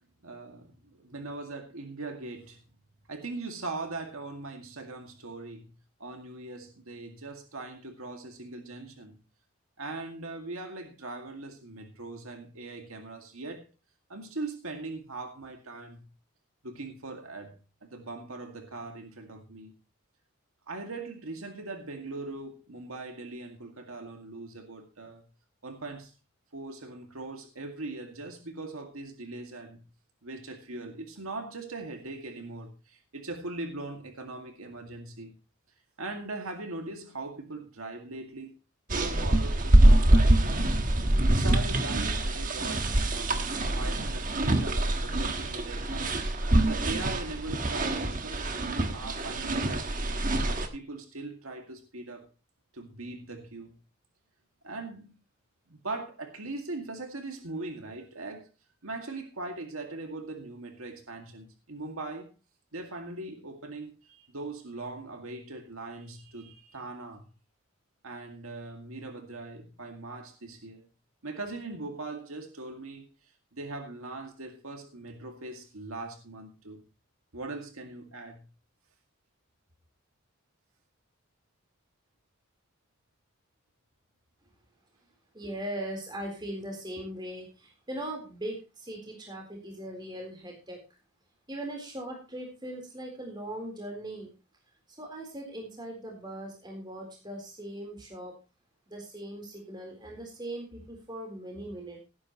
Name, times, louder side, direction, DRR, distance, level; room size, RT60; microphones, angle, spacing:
voice 1, 0.2-2.6 3.1-5.7 6.0-9.2 9.8-13.7 14.1-16.0 16.6-19.7 20.7-25.3 25.6-26.1 26.5-29.8 30.2-35.3 36.0-38.5 38.9-40.8 41.3-46.1 46.7-48.5 48.9-52.3 52.7-53.7 54.6-55.1 55.7-58.5 58.8-62.3 62.7-67.2 68.0-70.9 71.2-73.1 73.5-76.8 77.3-78.4, right 2 dB, 90° right, 2.1 m, -40 dB
sound 1, 38.9-50.7, right 1 dB, 40° right, 1.4 m, -25 dB
voice 2, 85.3-90.8 91.5-94.3 95.0-98.3 98.9-102.0, right 1 dB, 20° right, 3.8 m, -39 dB
17.5 x 9.8 x 3.0 m
head